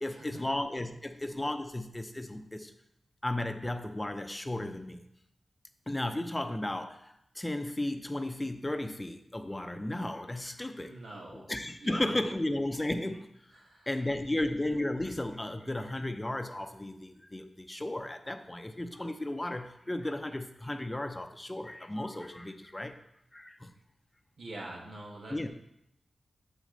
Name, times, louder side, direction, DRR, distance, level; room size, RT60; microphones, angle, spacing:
voice 1, 0.0-2.7 3.2-5.0 5.9-10.9 11.3-13.3 13.9-23.0 23.3-23.7 25.3-25.5, left 1 dB, 20° left, 7 dB, 0.6 m, -34 dB
voice 2, 10.8-11.4 11.8-12.1 13.6-13.9 14.3-14.4 24.4-25.4, right 1 dB, 85° right, -2 dB, 1.9 m, -44 dB
7.5 x 6.1 x 3.9 m, 0.78 s
cardioid pair, 65°, 0 cm